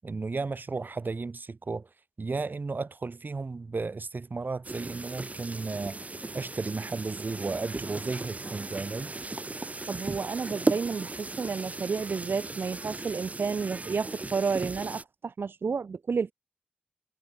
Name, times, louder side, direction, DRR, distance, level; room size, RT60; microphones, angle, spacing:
voice 1, 0.0-1.9 2.2-6.0 6.3-9.1, right 4 dB, 60° right, 6.8 m, -34 dB
sound 1, 4.6-15.0, right 2 dB, 40° right, 5.6 m, -36 dB
voice 2, 9.9-16.3, right 5 dB, 80° right, 3.9 m, -31 dB
cardioid pair, 45°, 4 cm